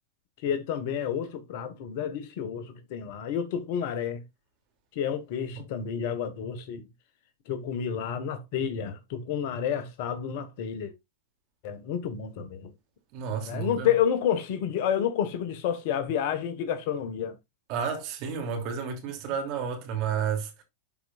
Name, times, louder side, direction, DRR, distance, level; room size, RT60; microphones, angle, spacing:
voice 1, 0.4-4.2 4.9-6.9 7.5-10.9 11.6-12.7 13.5-17.3, left 8 dB, 55° left, 1.5 m, -30 dB
voice 2, 13.1-13.9 17.7-20.6, right 7 dB, 45° right, 2.7 m, -31 dB
11.5 x 4.9 x 2.5 m
hypercardioid pair, 105°, 0 cm